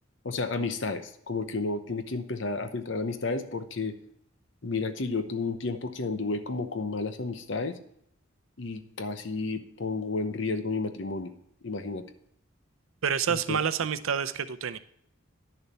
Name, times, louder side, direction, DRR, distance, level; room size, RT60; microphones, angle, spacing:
voice 1, 0.2-4.0 4.6-7.8 8.6-11.3 11.6-12.1 13.3-13.6, left 3 dB, 60° left, 9 dB, 0.8 m, -32 dB
voice 2, 13.0-14.8, right 7 dB, 80° right, 12 dB, 0.6 m, -28 dB
10.5 x 6.9 x 4.2 m, 0.69 s
head